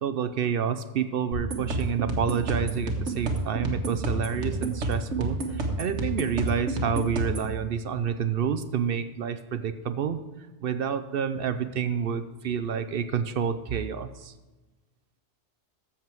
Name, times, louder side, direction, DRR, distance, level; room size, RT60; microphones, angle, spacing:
voice 1, 0.0-10.2 10.6-14.3, right 7 dB, 60° right, 11 dB, 0.7 m, -29 dB
sound 1, 1.3-7.5, right 2 dB, 80° right, 1.6 m, -29 dB
13.0 x 7.5 x 4.6 m, 1.2 s
omnidirectional pair, 1.2 m